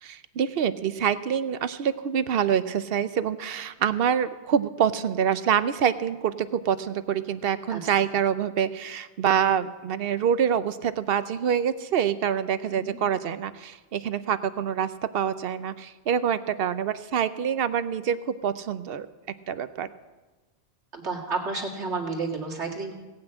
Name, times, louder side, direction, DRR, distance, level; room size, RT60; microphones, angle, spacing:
voice 1, 0.0-19.1 19.5-19.9, right 8 dB, 65° right, 13 dB, 0.8 m, -26 dB
voice 2, 20.9-22.9, right 4 dB, 90° right, 0 dB, 2.2 m, -31 dB
17.5 x 6.0 x 8.7 m, 1.2 s
omnidirectional pair, 1.1 m